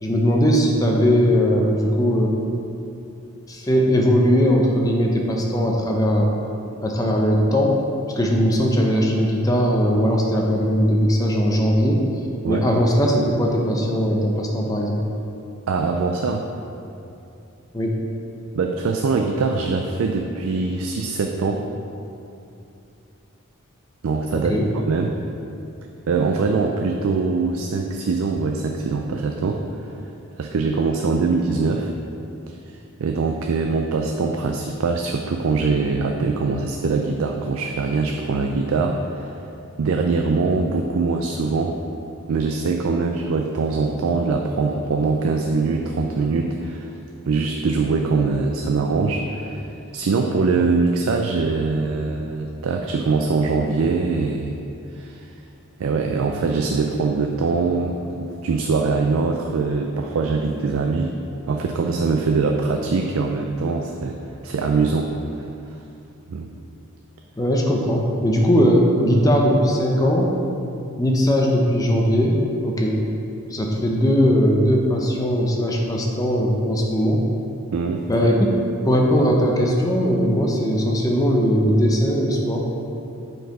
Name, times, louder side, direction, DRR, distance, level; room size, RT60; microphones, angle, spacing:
voice 1, 0.0-2.4 3.5-6.3 6.8-7.8 8.2-12.0 12.5-15.0 17.7-17.9 24.3-24.7 67.4-70.3 71.0-73.0 73.5-77.2 78.1-78.5 78.8-82.7, equal, 15° left, -1 dB, 0.6 m, -19 dB
voice 2, 15.7-16.5 18.5-21.7 24.0-24.6 24.9-25.1 26.1-29.6 30.4-31.9 32.5-39.4 39.8-41.8 42.3-46.9 47.3-49.7 49.9-54.6 54.9-55.3 55.8-61.2 61.5-65.1 66.3-66.5 77.7-78.1, right 4 dB, 70° right, 3 dB, 0.4 m, -23 dB
6.6 x 4.4 x 4.8 m, 2.7 s
head